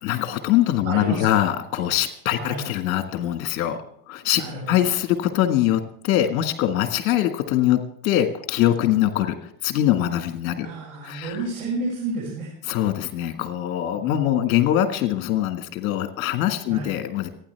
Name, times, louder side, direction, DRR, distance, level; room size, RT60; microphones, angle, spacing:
voice 1, 0.0-3.8 4.1-10.7 11.0-11.4 12.7-17.3, left 12 dB, 75° left, 7 dB, 1.7 m, -23 dB
voice 2, 0.8-1.4 2.4-2.6 4.3-4.9 10.6-12.5 14.0-14.2 16.7-16.9, right 3 dB, 85° right, -4 dB, 6.6 m, -31 dB
28.5 x 9.7 x 3.4 m, 0.66 s
hypercardioid pair, 80°, 41 cm